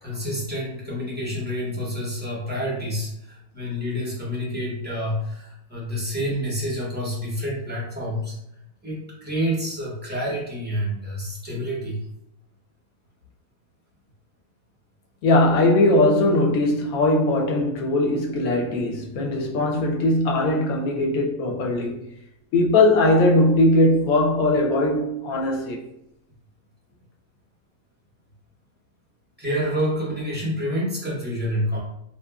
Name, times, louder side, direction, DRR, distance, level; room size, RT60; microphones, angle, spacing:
voice 1, 0.0-8.4 8.8-12.0 29.4-31.8, equal, 10° right, 0.6 m, -28 dB
voice 2, 15.2-22.1 22.5-25.8, left 1 dB, 85° left, 1.0 m, -20 dB
2.9 x 2.3 x 2.2 m
omnidirectional pair, 1.4 m